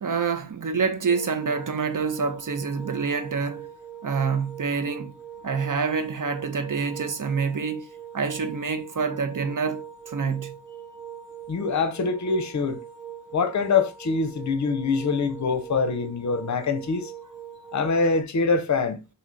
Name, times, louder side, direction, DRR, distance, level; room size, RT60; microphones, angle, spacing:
voice 1, 0.0-3.7 4.0-5.1 5.4-7.9 8.1-10.5, right 5 dB, 50° right, 0.7 m, -27 dB
sound 1, 1.1-18.2, right 9 dB, ahead, 1.2 m, -42 dB
voice 2, 11.5-12.8 13.3-17.1 17.7-19.0, left 4 dB, 45° left, 0.6 m, -24 dB
3.1 x 2.7 x 3.8 m
wide cardioid pair, 50°, 42 cm